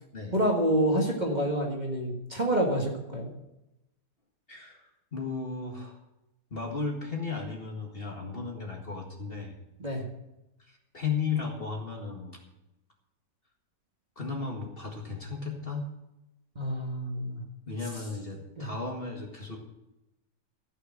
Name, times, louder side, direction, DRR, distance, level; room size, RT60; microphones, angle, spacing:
voice 1, 0.3-3.3 9.8-10.0 16.6-17.4 18.6-18.7, right 1 dB, 25° right, 0 dB, 1.9 m, -28 dB
voice 2, 4.5-6.0 6.5-9.5 10.6-12.4 14.2-15.9 17.7-19.6, left 5 dB, 30° left, 1 dB, 1.9 m, -35 dB
14.5 x 6.6 x 7.6 m, 0.94 s
omnidirectional pair, 1.9 m